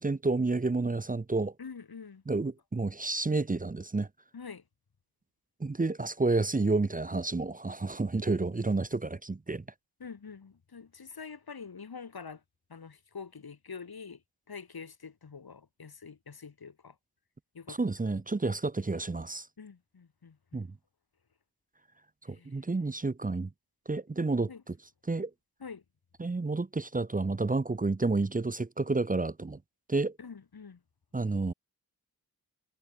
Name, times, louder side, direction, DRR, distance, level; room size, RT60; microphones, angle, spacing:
voice 1, 0.0-1.5 2.3-4.1 5.6-9.6 17.7-19.5 20.5-20.7 22.3-23.5 23.9-24.8 25.0-25.3 26.2-29.6 29.9-30.2 31.1-31.5, right 3 dB, 25° right, 0.6 m, -30 dB
voice 2, 1.6-2.2 4.3-4.6 10.0-12.4 12.7-14.2 14.5-16.9 17.5-17.9 19.6-20.6 22.3-22.6 24.5-24.6 25.6-25.8 30.2-30.8, left 5 dB, 85° left, 2.3 m, -46 dB
wide cardioid pair, 60°, 36 cm